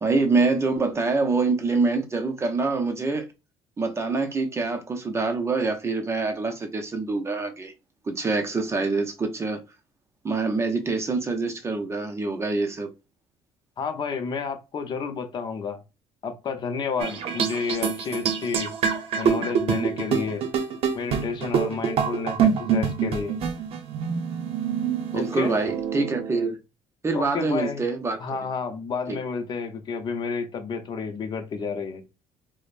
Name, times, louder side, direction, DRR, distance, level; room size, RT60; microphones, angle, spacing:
voice 1, 0.0-3.3 3.8-7.7 8.1-9.6 10.2-12.9 25.1-26.6 27.0-28.2 29.1-29.2, right 3 dB, 25° right, 0.6 m, -25 dB
voice 2, 13.8-15.8 16.2-18.7 19.2-20.4 20.9-23.4 25.1-25.5 27.1-27.8 28.2-32.1, left 5 dB, 40° left, 0.7 m, -30 dB
sound 1, 17.0-26.5, right 7 dB, 55° right, 0.7 m, -26 dB
4.9 x 2.1 x 2.5 m
cardioid pair, 110°, 12 cm